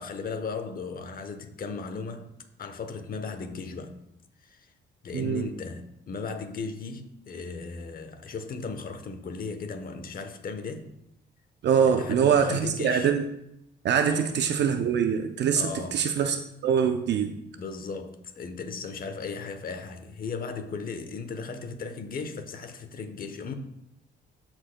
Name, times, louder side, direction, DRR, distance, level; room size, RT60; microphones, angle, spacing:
voice 1, 0.0-2.2 2.6-4.0 4.4-4.7 5.0-10.9 11.8-13.1 14.0-14.3 15.5-16.1 17.5-23.5, left 4 dB, 45° left, 0.9 m, -36 dB
voice 2, 5.1-5.5 11.6-13.2 13.8-17.3, right 7 dB, 60° right, 0.5 m, -24 dB
12.5 x 4.4 x 2.2 m
cardioid pair, 90°, 20 cm